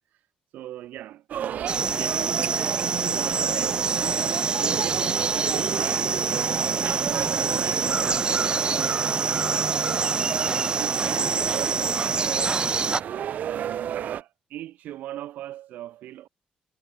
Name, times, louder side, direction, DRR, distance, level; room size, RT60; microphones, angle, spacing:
voice 1, 0.5-7.0 7.5-12.8 13.4-16.3, right 13 dB, 90° right, 3.9 m, -40 dB
sound 1, 1.3-14.2, right 10 dB, 70° right, 2.4 m, -32 dB
sound 2, 1.7-13.0, right 4 dB, 35° right, 0.4 m, -26 dB
cardioid pair, 85°, 3 cm